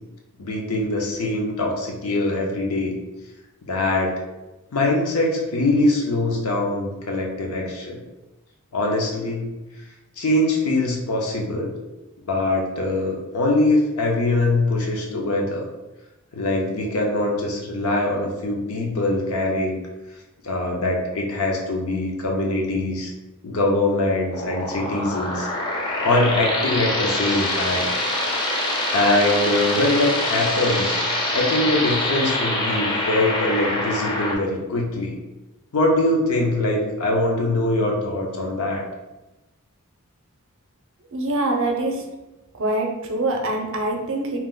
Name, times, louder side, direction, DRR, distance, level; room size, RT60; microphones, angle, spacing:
voice 1, 0.4-2.9 3.7-4.1 4.7-8.0 8.7-9.5 10.2-11.8 12.3-15.7 16.3-19.8 20.4-23.1 23.4-25.5 26.0-27.9 28.9-31.0 31.3-35.2 35.7-38.9, left 2 dB, 70° left, 0 dB, 0.7 m, -22 dB
sound 1, 24.3-34.3, left 1 dB, 20° left, 0.5 m, -25 dB
voice 2, 41.1-42.0 42.6-44.4, right 2 dB, 60° right, 2 dB, 0.5 m, -24 dB
2.9 x 2.0 x 3.6 m, 1.0 s
head